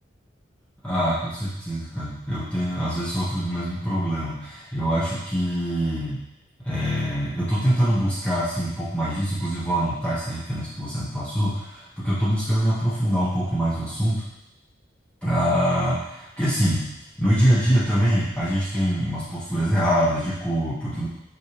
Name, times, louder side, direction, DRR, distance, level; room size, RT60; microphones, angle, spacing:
voice 1, 0.8-6.2 6.6-14.3 15.2-16.9 17.2-21.1, equal, 5° left, -11 dB, 1.5 m, -24 dB
8.8 x 3.5 x 3.3 m, 0.88 s
head